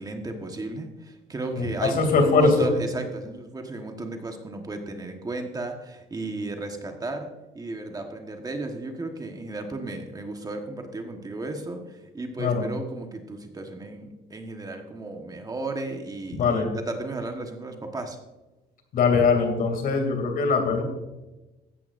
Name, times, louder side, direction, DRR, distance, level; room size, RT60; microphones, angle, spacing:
voice 1, 0.0-18.2, right 2 dB, 20° right, 4 dB, 1.3 m, -34 dB
voice 2, 1.5-2.7 12.4-12.7 16.3-16.7 18.9-20.8, left 4 dB, 60° left, 5 dB, 2.7 m, -22 dB
15.0 x 10.5 x 2.6 m, 1.1 s
cardioid pair, 110°, 17 cm